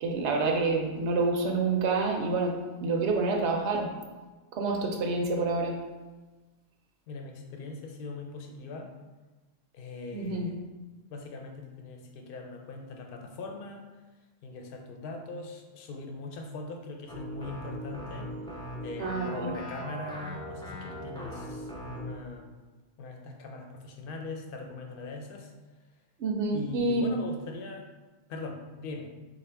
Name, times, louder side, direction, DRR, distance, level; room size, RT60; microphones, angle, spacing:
voice 1, 0.0-2.5 2.8-3.9 4.6-5.8 10.1-10.5 19.0-19.6 26.2-27.1, right 3 dB, 90° right, 1 dB, 1.0 m, -28 dB
voice 2, 7.1-8.9 9.7-10.5 11.1-13.8 14.4-18.3 18.8-22.5 23.0-25.5 26.5-27.9 28.3-29.1, left 3 dB, 60° left, 2 dB, 0.7 m, -41 dB
sound 1, 17.1-22.2, equal, 5° left, 0.3 m, -39 dB
4.2 x 2.5 x 3.3 m, 1.2 s
omnidirectional pair, 1.1 m